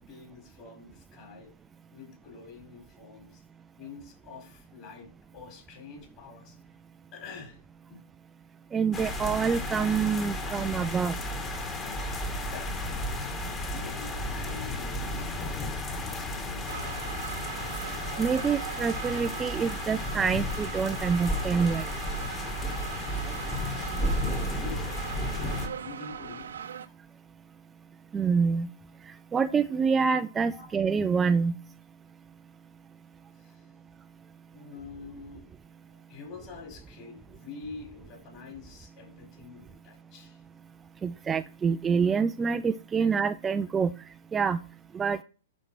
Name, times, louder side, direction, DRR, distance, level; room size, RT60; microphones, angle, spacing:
voice 1, 0.0-1.5 1.9-3.4 3.8-6.6 7.1-7.6 7.9-8.0 12.5-13.4 13.7-17.2 24.5-25.1 25.8-26.5 30.5-30.7 33.4-33.7 34.5-35.5 35.8-40.4, left 4 dB, 35° left, 2 dB, 4.7 m, -46 dB
voice 2, 8.7-11.1 18.2-21.9 28.1-28.7 29.1-31.6 41.0-43.9 44.3-44.6 44.9-45.2, right 5 dB, 15° right, 10 dB, 0.4 m, -26 dB
sound 1, 8.9-25.7, left 1 dB, 20° left, 1.9 m, -33 dB
sound 2, 16.7-26.9, right 8 dB, 75° right, 0.9 m, -40 dB
11.5 x 4.3 x 6.1 m, 0.37 s
hypercardioid pair, 115°, 0 cm